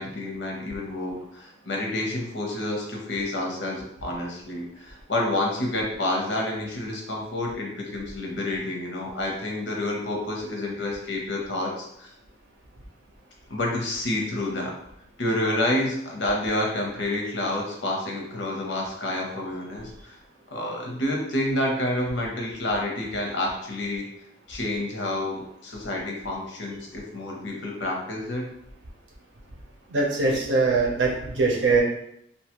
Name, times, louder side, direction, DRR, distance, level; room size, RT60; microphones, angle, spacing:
voice 1, 0.0-12.1 13.5-14.7 15.2-20.2 20.5-24.1 24.5-28.5, left 1 dB, 85° left, -1 dB, 0.7 m, -29 dB
voice 2, 29.9-31.8, right 3 dB, 80° right, -1 dB, 0.7 m, -22 dB
2.6 x 2.3 x 3.0 m, 0.76 s
head